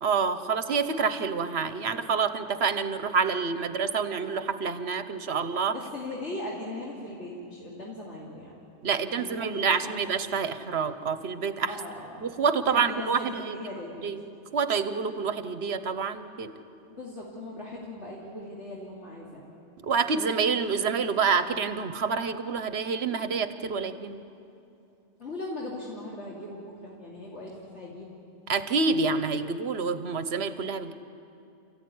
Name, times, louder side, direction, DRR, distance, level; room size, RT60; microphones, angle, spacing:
voice 1, 0.0-5.7 8.8-11.7 12.2-13.6 14.0-14.2 14.5-16.5 19.8-24.2 28.5-30.9, right 5 dB, 65° right, 11 dB, 1.3 m, -27 dB
voice 2, 5.7-8.5 9.2-10.1 11.7-12.3 12.7-14.1 17.0-19.5 25.2-28.3, left 1 dB, 75° left, -5 dB, 3.0 m, -39 dB
28.5 x 15.0 x 9.5 m, 2.7 s
omnidirectional pair, 1.2 m